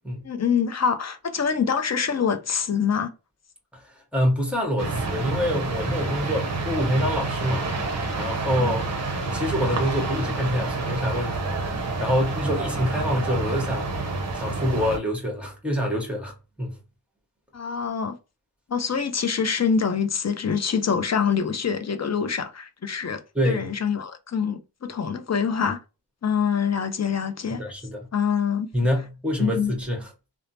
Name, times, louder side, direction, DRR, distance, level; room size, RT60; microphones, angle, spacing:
voice 1, 0.2-3.1 8.6-8.7 17.5-18.2 18.7-25.8 26.2-27.6 28.1-28.7 29.4-29.8, left 6 dB, 40° left, 0.5 m, -25 dB
voice 2, 3.7-7.8 8.2-8.8 9.3-11.6 12.0-13.9 14.3-16.8 23.3-23.7 27.5-28.1 28.7-30.1, equal, 5° right, 1.2 m, -26 dB
sound 1, 4.8-15.0, right 3 dB, 40° right, 0.7 m, -28 dB
3.2 x 2.0 x 2.6 m
wide cardioid pair, 100°, 41 cm